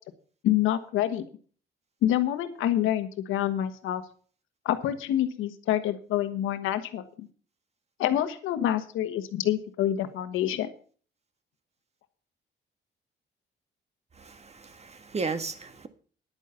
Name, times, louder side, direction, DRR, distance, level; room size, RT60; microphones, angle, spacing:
voice 1, 0.4-1.2 2.0-4.0 4.6-7.3 8.0-10.7, left 12 dB, 90° left, 9 dB, 1.4 m, -27 dB
voice 2, 14.2-15.9, right 4 dB, 30° right, 9 dB, 1.7 m, -34 dB
10.5 x 9.1 x 5.8 m, 0.42 s
cardioid pair, 90°, 20 cm